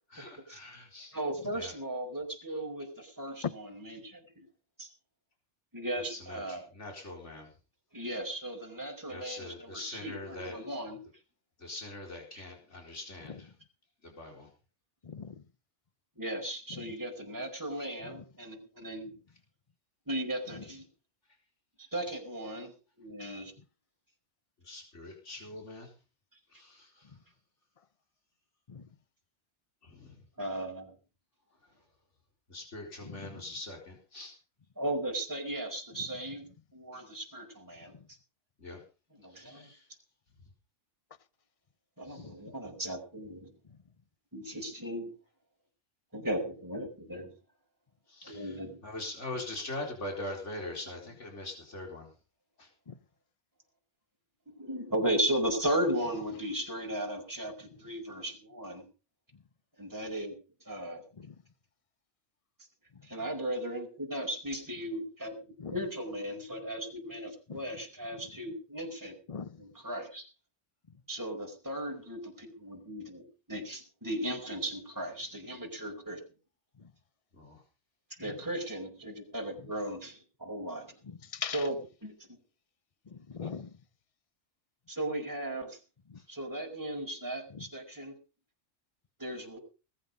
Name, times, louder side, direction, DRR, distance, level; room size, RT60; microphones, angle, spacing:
voice 1, 0.1-1.2 1.5-1.7 6.1-7.5 9.1-10.6 11.6-13.5 14.0-14.5 24.6-25.9 26.5-27.2 29.8-30.2 32.5-34.3 38.6-38.8 39.3-39.9 42.0-42.3 48.1-52.1 52.6-52.7 77.3-77.6 86.2-86.3, left 2 dB, 70° left, 4.4 m, -43 dB
voice 2, 1.1-4.4 4.8-4.9 5.7-6.6 7.9-11.0 16.2-19.1 20.1-20.8 21.8-22.7 23.0-23.5 30.4-30.9 34.8-36.4 36.7-38.0 39.2-39.7 42.0-43.5 44.3-45.1 46.1-47.3 48.2-48.8 54.6-58.8 59.8-60.3 60.6-61.0 63.0-69.2 69.6-70.3 71.1-76.2 78.2-80.9 81.5-81.7 82.0-82.4 84.9-85.8 86.3-88.1 89.2-89.6, right 1 dB, 15° right, 4.9 m, -36 dB
voice 3, 15.0-15.4 16.7-16.9 18.0-18.2 20.5-20.6 27.1-27.2 28.7-28.9 33.0-33.4 36.0-36.1 38.0-38.1 42.2-42.5 43.7-43.8 52.9-53.0 61.2-61.4 62.9-63.0 65.6-65.8 67.5-67.6 69.3-69.6 76.8-76.9 78.3-78.4 81.0-81.7 83.1-83.8 86.1-86.2 87.5-87.7, left 6 dB, 30° left, 0.8 m, -42 dB
20.0 x 10.0 x 5.3 m
omnidirectional pair, 1.3 m